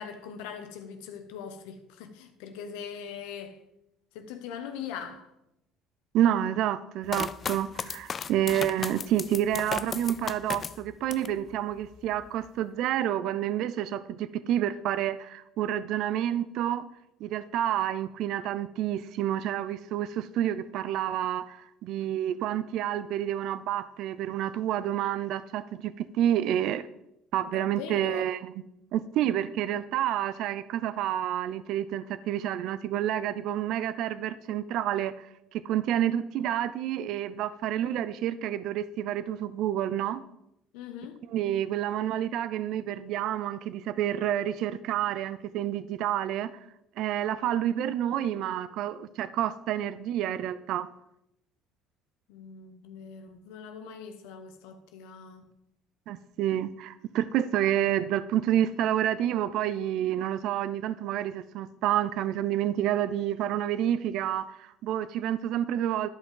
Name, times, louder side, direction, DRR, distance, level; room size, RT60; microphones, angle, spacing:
voice 1, 0.0-3.6 4.1-5.3 27.5-28.3 40.7-41.2 52.3-55.4, left 7 dB, 80° left, 1.0 m, -41 dB
voice 2, 6.1-16.9 17.2-26.9 27.3-28.5 28.9-35.3 35.5-40.2 41.3-46.5 47.0-50.9 56.1-66.1, right 11 dB, 65° right, 0.4 m, -29 dB
sound 1, 7.1-11.4 11.8-12.5, left 6 dB, 40° left, 0.3 m, -35 dB
12.0 x 5.4 x 3.8 m
supercardioid pair, 75°, 0 cm